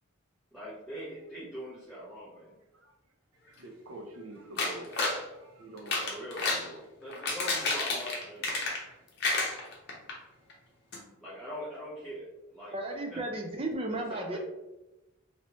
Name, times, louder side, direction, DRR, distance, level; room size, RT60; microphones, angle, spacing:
voice 1, 0.5-2.5 6.1-6.5 7.0-8.8 9.7-9.8 11.2-12.2 12.5-12.7 13.1-13.2 13.9-14.4, equal, ahead, -11 dB, 0.8 m, -42 dB
voice 2, 3.5-5.0 5.3-6.9, right 2 dB, 90° right, 2 dB, 0.7 m, -46 dB
sound 1, 4.6-5.2 5.8-6.7 7.1-8.9 9.2-10.1 10.5-10.6 10.9-11.0, left 3 dB, 55° left, 0.8 m, -30 dB
voice 3, 12.7-14.4, right 1 dB, 25° right, 2 dB, 0.5 m, -34 dB
3.0 x 2.9 x 2.9 m, 0.99 s
head